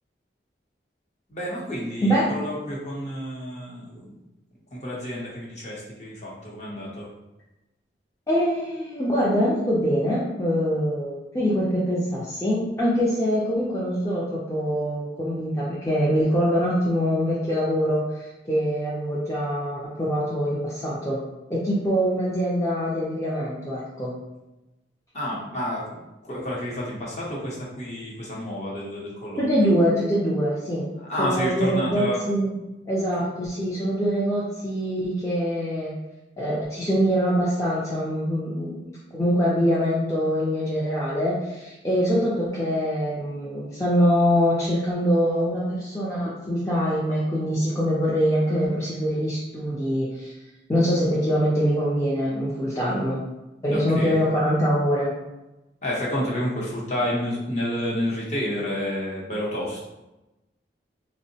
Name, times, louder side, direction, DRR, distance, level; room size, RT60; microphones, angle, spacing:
voice 1, 1.3-4.1 4.7-7.1 25.1-29.7 31.0-32.2 53.7-54.2 55.8-59.9, equal, 40° left, -4 dB, 0.7 m, -30 dB
voice 2, 8.3-21.2 21.5-24.1 29.4-30.9 31.2-32.6 32.9-35.9 36.4-38.8 39.1-50.3 50.7-53.2 53.6-55.1, equal, 15° left, -8 dB, 0.4 m, -24 dB
3.5 x 2.1 x 2.7 m, 1.0 s
head